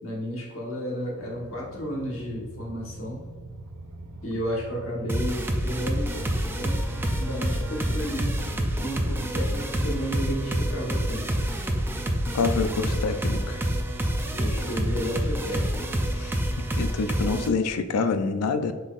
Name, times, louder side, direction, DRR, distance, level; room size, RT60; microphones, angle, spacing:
voice 1, 0.0-3.2 4.2-8.4 8.8-11.2 14.3-16.0, equal, 65° left, -3 dB, 1.2 m, -32 dB
sound 1, 1.2-17.2, right 2 dB, 80° right, 0.5 m, -42 dB
sound 2, 5.1-17.5, right 1 dB, 10° right, 0.4 m, -27 dB
voice 2, 12.3-13.6 16.2-18.7, left 4 dB, 90° left, 9 dB, 0.4 m, -27 dB
5.3 x 4.0 x 2.4 m, 1.5 s
head